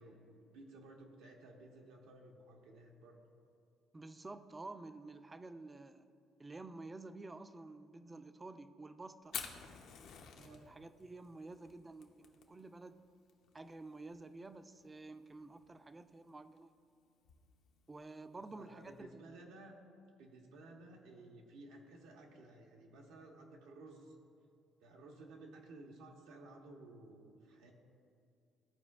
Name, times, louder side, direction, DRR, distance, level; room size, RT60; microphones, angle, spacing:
voice 1, 0.0-3.2 10.4-10.6 18.3-19.8 20.2-24.1 24.8-27.7, right 2 dB, 90° right, 1 dB, 1.0 m, -55 dB
voice 2, 3.9-6.1 6.4-9.4 10.4-13.0 13.5-16.7 17.9-19.2, right 2 dB, 20° right, 10 dB, 0.4 m, -50 dB
Fire, 9.2-19.0, left 7 dB, 75° left, 0.7 m, -52 dB
13.5 x 4.5 x 2.4 m, 2.5 s
cardioid pair, 90°, 0 cm